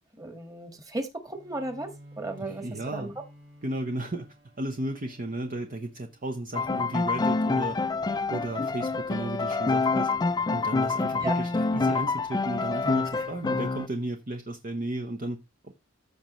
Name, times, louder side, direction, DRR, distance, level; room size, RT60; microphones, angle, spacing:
voice 1, 0.2-1.9 2.2-3.1 11.2-11.3, right 2 dB, 20° right, 1.7 m, -34 dB
Bowed string instrument, 1.2-6.7, equal, 60° right, 5.7 m, -52 dB
voice 2, 2.4-3.1 3.6-7.8 8.3-10.1 10.5-15.7, right 1 dB, 45° right, 0.9 m, -34 dB
Piano, 6.5-13.9, left 4 dB, 20° left, 0.4 m, -27 dB
14.5 x 5.2 x 3.1 m
head